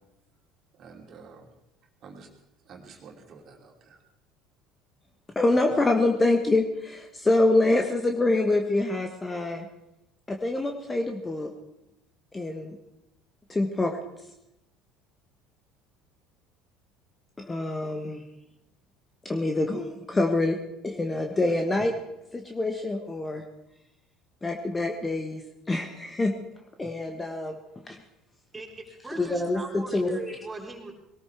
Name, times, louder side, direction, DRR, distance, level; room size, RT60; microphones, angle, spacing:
voice 1, 0.7-1.5 2.0-2.3 2.7-4.0, right 5 dB, 40° right, 2 dB, 2.9 m, -48 dB
voice 2, 5.3-9.7 10.3-11.5 12.3-12.7 13.5-14.0 17.4-18.2 19.2-20.6 20.8-21.9 22.3-23.4 24.4-25.4 25.7-26.3 26.8-27.6 29.2-30.2, left 2 dB, 15° left, 4 dB, 1.4 m, -25 dB
voice 3, 28.5-30.9, right 2 dB, 15° right, 0 dB, 3.8 m, -40 dB
21.5 x 18.5 x 3.5 m, 0.88 s
figure-of-eight pair, 65°, 0 cm